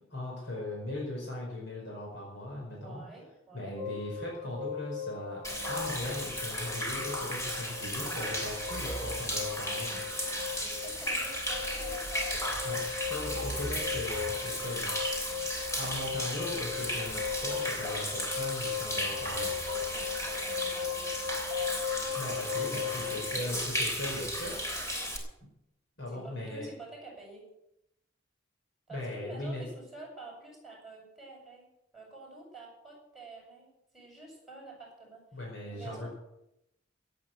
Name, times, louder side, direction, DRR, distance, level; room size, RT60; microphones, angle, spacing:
voice 1, 0.1-3.0 3.5-10.0 12.6-14.9 15.4-19.5 22.1-24.6 26.0-26.7 28.9-29.6 35.3-36.1, left 1 dB, 60° left, -2 dB, 5.0 m, -39 dB
voice 2, 2.7-3.8 10.6-12.5 13.4-13.7 19.3-21.3 23.2-23.6 26.1-27.5 28.9-31.7 31.9-33.7 33.9-35.2 35.6-36.2, right 2 dB, ahead, -2 dB, 7.8 m, -49 dB
sound 1, 3.8-23.3, left 7 dB, 35° left, 2.3 m, -38 dB
Human voice / Rain / Stream, 5.4-25.2, equal, 15° left, 3.3 m, -35 dB
17.0 x 8.6 x 7.8 m, 0.83 s
head